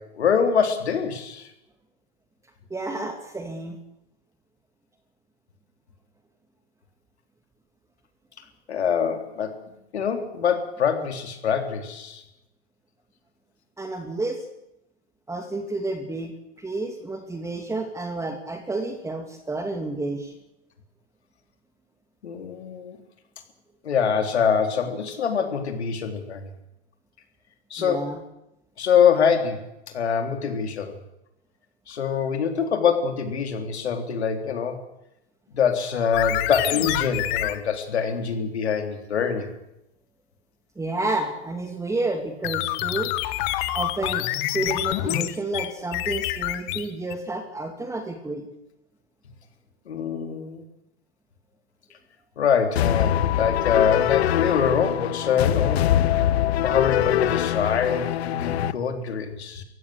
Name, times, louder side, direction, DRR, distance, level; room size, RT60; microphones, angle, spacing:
voice 1, 0.0-1.5 8.7-9.6 9.9-12.2 22.2-23.0 23.8-26.5 27.7-28.1 28.8-29.7 29.9-30.9 31.9-34.8 35.5-39.5 49.9-50.6 52.4-56.3 56.6-59.6, left 7 dB, 90° left, 6 dB, 3.8 m, -24 dB
voice 2, 2.7-3.8 13.8-14.4 15.3-20.3 27.8-28.2 40.8-43.1 43.7-44.3 44.5-48.5, right 2 dB, 10° right, 5 dB, 2.4 m, -30 dB
sound 1, 36.1-37.6 42.4-47.1, left 15 dB, 50° left, 1.6 m, -27 dB
sound 2, 52.7-58.7, left 12 dB, 75° left, 1.1 m, -23 dB
25.5 x 15.5 x 8.0 m, 0.87 s
hypercardioid pair, 120°, 32 cm